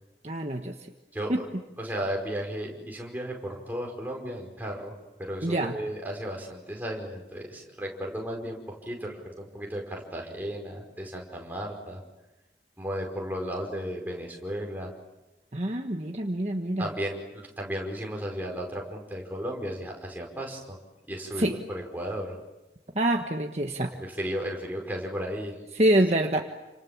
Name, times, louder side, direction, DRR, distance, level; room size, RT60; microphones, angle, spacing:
voice 1, 0.2-0.8 1.3-1.4 5.4-5.8 15.5-16.9 21.4-21.6 22.9-23.9 25.7-26.4, right 1 dB, 40° right, 3 dB, 1.4 m, -26 dB
voice 2, 1.1-1.4 1.8-12.0 12.8-14.9 16.8-20.8 21.1-22.4 23.9-25.6, equal, 10° right, -1 dB, 5.2 m, -34 dB
30.0 x 27.0 x 7.4 m, 1.0 s
head